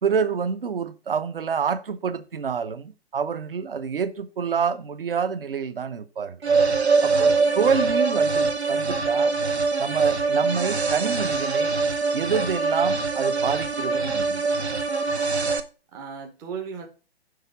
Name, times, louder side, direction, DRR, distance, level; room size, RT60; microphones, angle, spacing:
voice 1, 0.0-6.4 7.0-9.3 9.8-11.8 12.1-14.4, right 6 dB, 60° right, 0.9 m, -27 dB
sound 1, 6.4-15.6, right 4 dB, 80° right, 1.1 m, -23 dB
voice 2, 7.1-7.6 15.9-16.9, right 6 dB, 10° right, 0.6 m, -37 dB
6.6 x 4.9 x 5.9 m
figure-of-eight pair, 130°, 32 cm